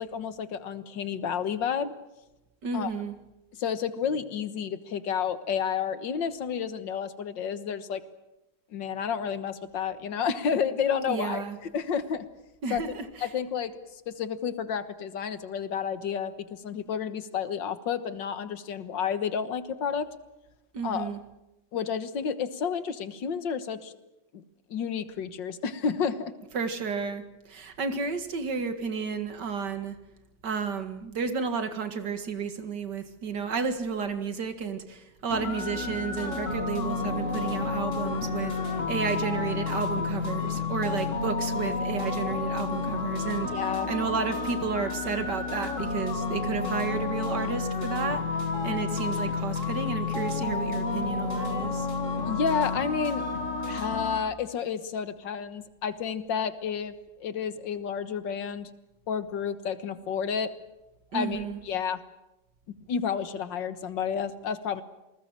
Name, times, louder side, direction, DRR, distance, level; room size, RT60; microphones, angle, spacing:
voice 1, 0.0-2.0 2.7-2.9 3.6-8.0 8.7-11.4 11.7-12.2 12.7-12.8 13.2-13.7 14.1-20.1 20.8-21.1 21.7-23.9 24.3-24.4 24.7-26.3 43.4-43.9 52.3-53.2 53.7-56.9 57.2-58.7 59.1-60.5 61.1-62.0 62.7-64.8, left 7 dB, 75° left, 12 dB, 2.0 m, -30 dB
voice 2, 2.6-3.1 11.1-11.6 12.6-13.3 20.7-21.2 26.5-27.2 27.5-29.9 30.4-48.2 48.6-51.9 61.1-61.6, right 5 dB, 65° right, 8 dB, 2.5 m, -32 dB
sound 1, 35.3-54.2, left 4 dB, 40° left, 2.6 m, -30 dB
sound 2, 35.8-53.5, equal, 5° right, 5.5 m, -48 dB
27.5 x 20.0 x 7.5 m, 0.97 s
omnidirectional pair, 2.0 m